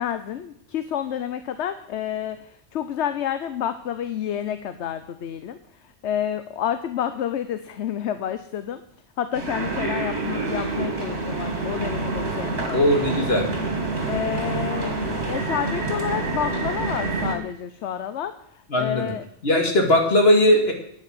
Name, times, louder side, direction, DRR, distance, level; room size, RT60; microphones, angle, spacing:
voice 1, 0.0-2.4 2.7-5.6 6.0-8.8 9.2-13.1 14.0-15.0 15.3-18.3 18.8-19.2, left 9 dB, 70° left, 11 dB, 1.0 m, -29 dB
sound 1, 9.3-17.4, right 3 dB, 60° right, 2.7 m, -27 dB
voice 2, 12.7-13.4 18.7-19.1 19.4-20.7, left 1 dB, 55° left, 2 dB, 2.7 m, -18 dB
9.7 x 9.6 x 7.8 m, 0.71 s
omnidirectional pair, 1.2 m